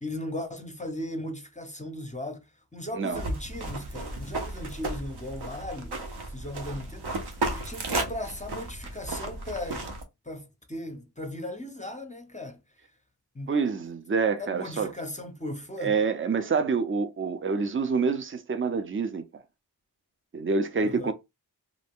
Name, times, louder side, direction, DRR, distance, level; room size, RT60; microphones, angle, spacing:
voice 1, 0.0-6.0 6.3-7.2 7.5-9.9 10.2-12.6 13.3-13.5 14.4-16.0 20.8-21.1, left 1 dB, 15° left, 0.6 m, -37 dB
sound 1, 3.1-10.0, right 2 dB, 65° right, 0.8 m, -34 dB
voice 2, 13.5-14.9 15.8-19.4 20.3-21.1, right 5 dB, 30° right, 0.5 m, -27 dB
2.5 x 2.1 x 3.5 m
wide cardioid pair, 50°, 43 cm